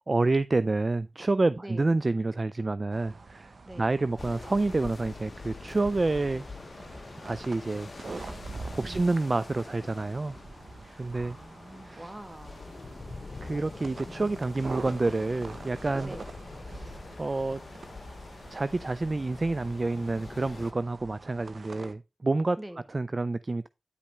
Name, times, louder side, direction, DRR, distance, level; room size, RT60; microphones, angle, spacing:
voice 1, 0.1-6.4 7.2-7.9 8.7-10.4 11.0-11.4 11.8-12.1 13.4-16.1 16.7-17.6 18.5-22.6 22.9-23.7, right 2 dB, 45° right, 0.3 m, -28 dB
voice 2, 1.6-1.9 3.6-3.9 6.3-6.4 8.8-9.1 10.8-12.8 13.8-14.3 16.0-16.2 22.6-22.8, right 1 dB, 25° right, 1.3 m, -45 dB
sound 1, 2.9-21.9, right 3 dB, 65° right, 0.9 m, -45 dB
sound 2, 4.2-20.7, left 3 dB, 55° left, 0.7 m, -45 dB
sound 3, 5.7-11.5, left 2 dB, 30° left, 2.1 m, -54 dB
9.7 x 5.2 x 3.3 m
cardioid pair, 40°, 0 cm